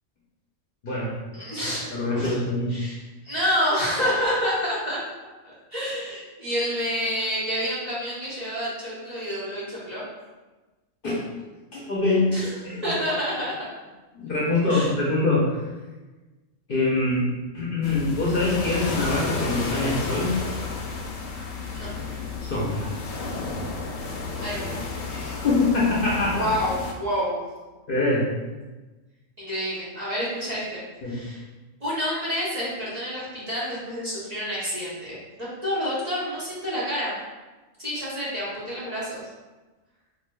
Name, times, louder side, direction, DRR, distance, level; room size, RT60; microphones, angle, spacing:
voice 1, 0.8-2.8 11.0-11.3 11.7-12.9 14.1-15.6 16.7-20.4 22.4-22.9 25.0-26.5 27.9-28.3 31.0-31.3, left 2 dB, 50° left, -6 dB, 0.8 m, -24 dB
voice 2, 1.3-1.9 2.1-2.4 2.7-5.0 5.4-10.0 12.3-13.5 14.7-14.9 21.7-21.9 24.4-24.6 26.3-27.4 29.4-31.4 31.8-37.1 37.8-39.2, equal, 35° right, -8 dB, 0.9 m, -28 dB
sound 1, 17.8-26.9, left 4 dB, 85° left, 1.0 m, -32 dB
4.7 x 2.6 x 2.2 m, 1.2 s
omnidirectional pair, 1.3 m